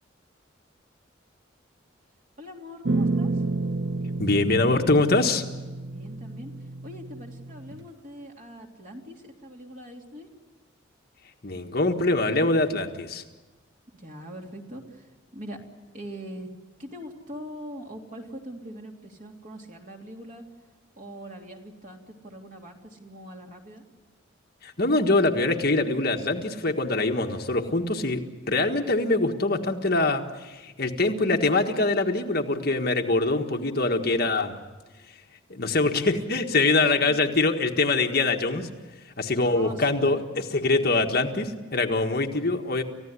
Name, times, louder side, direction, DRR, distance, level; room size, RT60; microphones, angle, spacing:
voice 1, 2.4-3.4 5.8-6.5 6.8-10.3 13.9-15.6 15.9-16.5 16.8-20.4 20.9-23.8 37.1-37.2 39.4-40.2, equal, 40° right, 1 dB, 3.1 m, -42 dB
sound 1, 2.9-7.9, right 2 dB, 60° right, 0.7 m, -30 dB
voice 2, 4.2-5.4 11.4-13.2 24.6-34.5 35.5-38.7 39.2-42.8, left 2 dB, 50° left, 3 dB, 1.7 m, -24 dB
29.5 x 15.5 x 9.7 m, 1.2 s
head